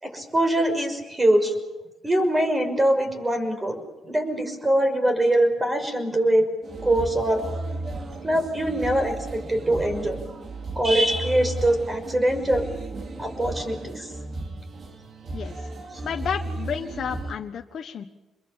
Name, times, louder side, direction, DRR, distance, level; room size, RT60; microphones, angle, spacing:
voice 1, 0.0-1.5 2.0-3.8 4.0-6.5 6.8-7.4 8.2-10.2 10.8-12.7 13.2-14.1, right 1 dB, 20° right, 7 dB, 6.1 m, -23 dB
sound 1, 6.6-17.4, right 2 dB, 50° right, 2.8 m, -35 dB
voice 2, 15.3-15.7 16.0-18.0, left 7 dB, 55° left, 4 dB, 1.3 m, -31 dB
27.0 x 22.5 x 7.2 m, 1.0 s
cardioid pair, 90°, 0 cm